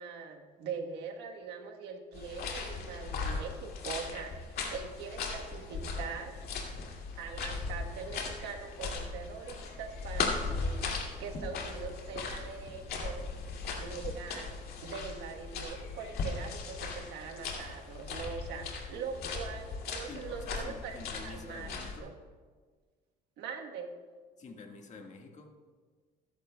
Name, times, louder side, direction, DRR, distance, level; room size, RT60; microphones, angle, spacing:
voice 1, 0.0-6.4 7.2-13.3 13.8-21.7 22.0-22.1 23.4-23.9, right 5 dB, 85° right, 3 dB, 1.2 m, -42 dB
sound 1, 2.1-22.0, left 4 dB, 65° left, 2.4 m, -38 dB
voice 2, 20.1-22.1 24.4-25.5, left 4 dB, 45° left, 2 dB, 1.6 m, -48 dB
21.0 x 11.0 x 2.2 m, 1.5 s
cardioid pair, 110°, 17 cm